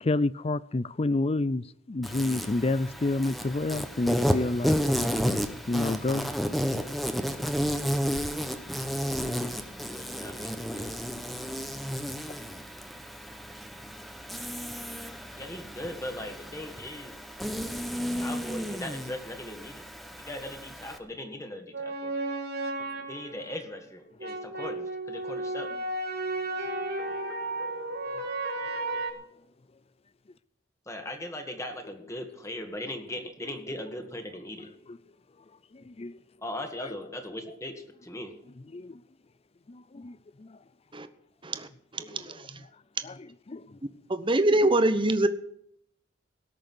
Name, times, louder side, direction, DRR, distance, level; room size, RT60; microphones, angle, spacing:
voice 1, 0.0-1.6 1.9-4.8 5.7-6.3 35.9-36.1 38.7-38.9 39.7-40.1 42.1-42.2 43.0-43.1 43.5-43.6, left 2 dB, 30° left, 0.5 m, -28 dB
Insect, 2.0-21.0, equal, ahead, 1.2 m, -32 dB
voice 2, 9.8-11.1 15.3-17.1 18.2-19.8 20.2-22.1 23.1-25.7 30.9-34.7 36.4-38.3, left 1 dB, 15° left, 2.0 m, -39 dB
sound 1, 21.7-23.5 24.2-29.1, right 2 dB, 60° right, 2.4 m, -33 dB
voice 3, 41.9-42.4 44.1-45.3, right 1 dB, 25° right, 1.0 m, -24 dB
18.0 x 6.7 x 7.9 m
head